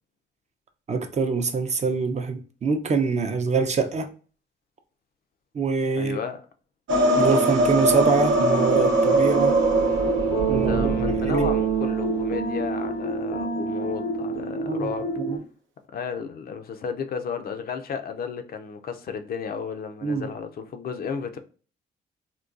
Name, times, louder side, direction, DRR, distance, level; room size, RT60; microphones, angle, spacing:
voice 1, 0.9-4.1 5.5-6.2 7.2-9.5 10.5-10.9 11.2-11.5 14.7-14.9 15.2-15.4 20.0-20.3, right 4 dB, 35° right, 0.5 m, -24 dB
voice 2, 6.0-6.5 10.5-15.1 15.9-21.4, left 6 dB, 50° left, 0.5 m, -33 dB
sound 1, 6.9-11.7, right 2 dB, 75° right, 0.7 m, -22 dB
sound 2, 8.3-15.4, right 4 dB, 90° left, 0.7 m, -27 dB
3.7 x 2.2 x 2.4 m
cardioid pair, 90°, 20 cm